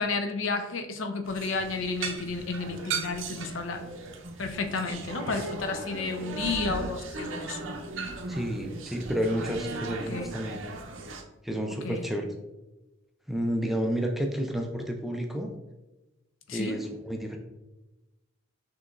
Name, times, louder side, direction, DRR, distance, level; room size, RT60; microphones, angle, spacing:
voice 1, 0.0-3.8 4.4-7.6 10.1-10.3 11.8-12.0 16.5-16.8, left 3 dB, 75° left, 6 dB, 0.5 m, -31 dB
sound 1, 1.2-11.2, right 3 dB, 75° right, 0.6 m, -37 dB
voice 2, 8.3-10.6 11.4-12.3 13.3-15.5 16.5-17.4, equal, ahead, 2 dB, 0.3 m, -30 dB
6.0 x 3.0 x 2.3 m, 1.1 s
head